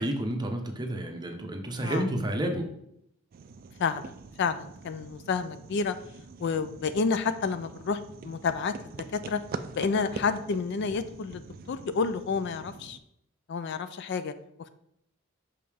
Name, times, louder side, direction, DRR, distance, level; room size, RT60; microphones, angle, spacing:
voice 1, 0.0-2.7, right 1 dB, 20° right, 3 dB, 0.7 m, -30 dB
sound 1, 3.3-13.0, right 4 dB, 45° right, 0.3 m, -44 dB
voice 2, 3.8-6.0 6.4-8.7 9.1-9.4 9.7-11.4 11.7-13.0 13.5-14.3, left 5 dB, 55° left, 12 dB, 0.4 m, -29 dB
5.7 x 5.2 x 3.4 m, 0.74 s
head